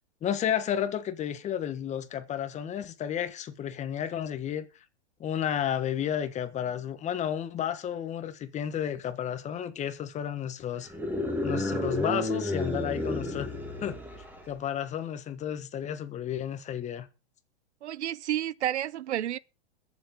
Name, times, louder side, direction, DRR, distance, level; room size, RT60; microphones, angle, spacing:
voice 1, 0.2-4.6 5.2-10.9 11.4-13.5 13.8-14.0 14.5-17.1, left 9 dB, 20° left, 1.3 m, -32 dB
sound 1, 10.9-14.5, left 1 dB, 5° right, 2.1 m, -31 dB
voice 2, 17.8-19.4, right 12 dB, 85° right, 0.7 m, -30 dB
21.5 x 7.3 x 3.9 m
hypercardioid pair, 140°, 33 cm